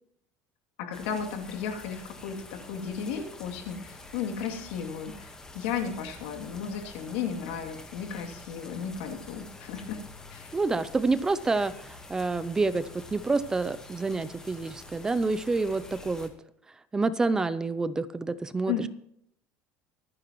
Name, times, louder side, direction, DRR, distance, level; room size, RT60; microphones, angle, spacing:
voice 1, 0.8-10.0 10.3-10.5 18.7-18.9, left 7 dB, 90° left, 3 dB, 2.7 m, -34 dB
sound 1, 0.9-16.3, left 2 dB, 10° left, 1.4 m, -47 dB
voice 2, 10.5-16.3 16.9-18.7, right 3 dB, 10° right, 15 dB, 0.4 m, -28 dB
24.5 x 10.0 x 3.1 m, 0.72 s
cardioid pair, 165°, 6 cm